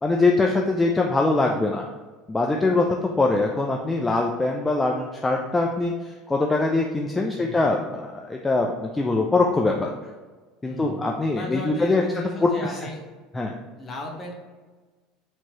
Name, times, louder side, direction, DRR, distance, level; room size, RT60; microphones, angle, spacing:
voice 1, 0.0-1.9 2.3-9.9 10.6-12.8 13.3-13.5, left 3 dB, 15° left, 1 dB, 0.4 m, -23 dB
voice 2, 7.4-7.7 10.6-11.0 11.4-13.0 13.8-14.3, left 2 dB, 30° left, 0 dB, 1.0 m, -35 dB
4.4 x 2.9 x 2.8 m, 1.3 s
supercardioid pair, 95°, 0 cm